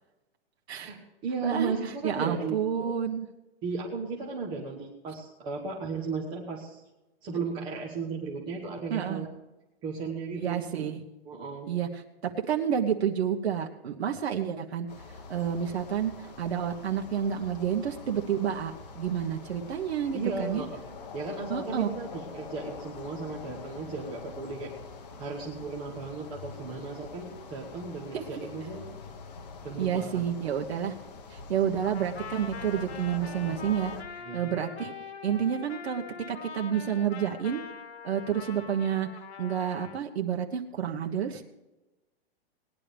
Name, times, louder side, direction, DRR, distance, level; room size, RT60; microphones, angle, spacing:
voice 1, 0.7-2.5 3.6-6.8 7.2-9.3 9.8-10.6 11.2-11.7 20.1-20.8 21.1-24.7 25.2-28.8 29.6-30.2 34.2-34.6, right 4 dB, 15° right, -3 dB, 1.1 m, -35 dB
voice 2, 2.0-3.3 8.9-9.3 10.4-11.0 11.7-12.0 12.5-14.9 15.3-20.6 21.5-21.9 28.1-28.3 29.8-31.0 31.3-33.9 34.3-34.9 35.2-37.6 38.0-39.1 39.4-41.4, right 8 dB, 80° right, 2 dB, 1.3 m, -29 dB
sound 1, 14.9-34.0, left 4 dB, 40° left, 1.3 m, -45 dB
Trumpet, 31.8-40.0, left 6 dB, 80° left, 1.6 m, -43 dB
19.0 x 11.0 x 3.5 m, 1.0 s
hypercardioid pair, 175°, 32 cm